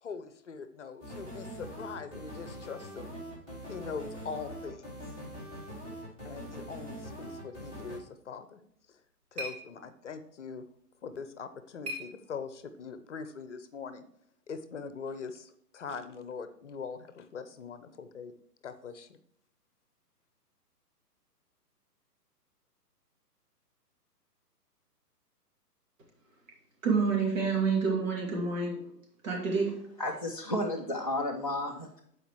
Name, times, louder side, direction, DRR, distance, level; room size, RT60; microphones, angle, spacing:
voice 1, 0.0-3.1 3.7-5.2 6.2-8.6 8.9-9.0 9.3-10.7 11.0-14.0 14.5-18.3 18.6-19.2, left 5 dB, 45° left, 0.8 m, -42 dB
sound 1, 1.0-8.0, equal, 15° right, 2.8 m, -43 dB
sound 2, 8.6-12.8, right 1 dB, 75° right, 3.5 m, -46 dB
voice 2, 26.8-28.8 29.2-29.8, right 5 dB, 55° right, 2.6 m, -28 dB
voice 3, 30.0-32.0, left 1 dB, 25° left, 0.4 m, -32 dB
13.5 x 5.0 x 3.1 m
figure-of-eight pair, 135°, 48 cm